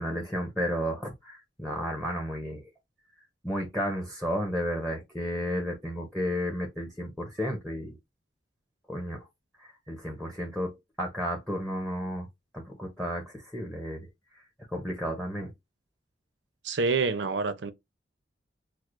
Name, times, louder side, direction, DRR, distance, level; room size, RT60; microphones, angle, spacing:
voice 1, 0.0-2.7 3.4-8.0 8.9-9.3 9.6-10.7 11.0-12.3 12.5-14.1 14.7-15.5, equal, 5° left, 0.7 m, -32 dB
voice 2, 16.6-17.7, right 4 dB, 80° right, 0.6 m, -27 dB
4.6 x 2.0 x 2.5 m
head